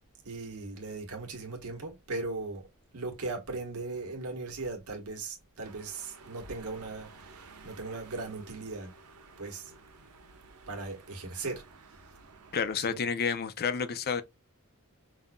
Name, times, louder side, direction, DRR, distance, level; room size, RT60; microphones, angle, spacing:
voice 1, 0.2-2.7 2.9-8.9 9.4-9.7 10.7-11.6 11.9-12.0 12.9-13.0, right 3 dB, 70° right, 1.3 m, -38 dB
sound 1, 5.6-12.7, right 4 dB, 90° right, 0.9 m, -54 dB
voice 2, 12.5-14.2, left 6 dB, 45° left, 0.5 m, -30 dB
5.3 x 2.5 x 2.2 m
head